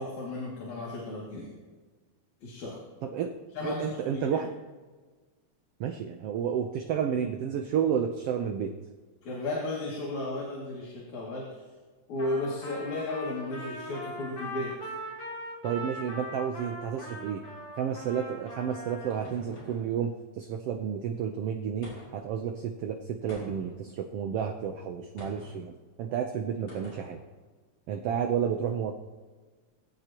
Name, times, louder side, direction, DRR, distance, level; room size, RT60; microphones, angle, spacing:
voice 1, 0.0-1.5 2.4-2.8 3.5-4.4 9.2-11.5 12.1-14.7, left 2 dB, 70° left, -4 dB, 3.8 m, -34 dB
voice 2, 3.0-3.4 3.6-4.5 5.8-8.7 15.6-17.4 17.8-25.7 26.0-27.2 27.9-28.9, right 8 dB, 70° right, 5 dB, 1.5 m, -31 dB
Trumpet, 12.2-19.3, equal, 45° left, 4.4 m, -40 dB
sound 1, 18.4-19.9 21.8-22.3 23.3-23.8 25.2-25.6 26.7-27.1, left 1 dB, 85° left, 7.6 m, -46 dB
22.5 x 16.0 x 3.0 m, 1.4 s
omnidirectional pair, 3.5 m